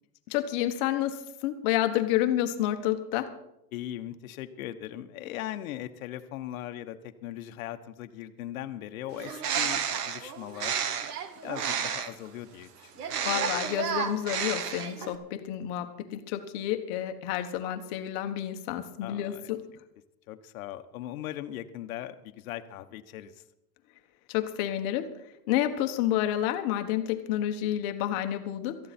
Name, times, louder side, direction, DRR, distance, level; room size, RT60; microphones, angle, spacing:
voice 1, 0.3-3.3 13.2-19.6 24.3-25.1 25.5-28.8, left 12 dB, 35° left, 7 dB, 1.3 m, -29 dB
voice 2, 3.7-10.8 11.4-13.1 19.0-19.5 20.3-23.4, left 12 dB, 60° left, 8 dB, 1.2 m, -39 dB
Bird, 9.1-12.3 13.0-15.2, right 7 dB, 80° right, 1.6 m, -31 dB
18.5 x 14.0 x 4.3 m, 0.85 s
supercardioid pair, 165°, 47 cm